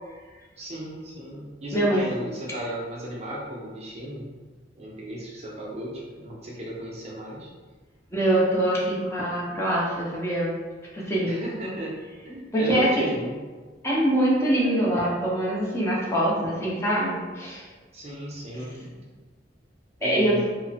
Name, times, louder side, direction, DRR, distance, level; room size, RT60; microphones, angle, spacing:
voice 1, 0.6-4.3 4.8-7.5 11.2-13.4 17.9-19.1 20.0-20.4, equal, 35° right, -5 dB, 0.5 m, -35 dB
voice 2, 1.7-2.0 8.1-10.5 10.9-11.4 12.5-13.1 13.8-17.6 20.0-20.4, right 1 dB, 15° left, -6 dB, 0.6 m, -24 dB
2.9 x 2.0 x 2.7 m, 1.4 s
head